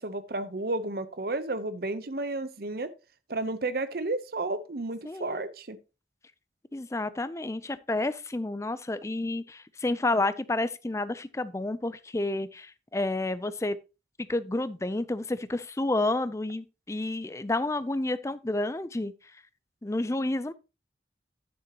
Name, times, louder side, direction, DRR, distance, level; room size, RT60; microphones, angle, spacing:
voice 1, 0.0-2.9 3.3-5.8, right 2 dB, 55° right, 0.8 m, -32 dB
voice 2, 5.0-5.4 6.7-13.8 14.3-19.1 19.8-20.5, left 2 dB, 15° left, 0.5 m, -30 dB
9.7 x 9.6 x 2.9 m
head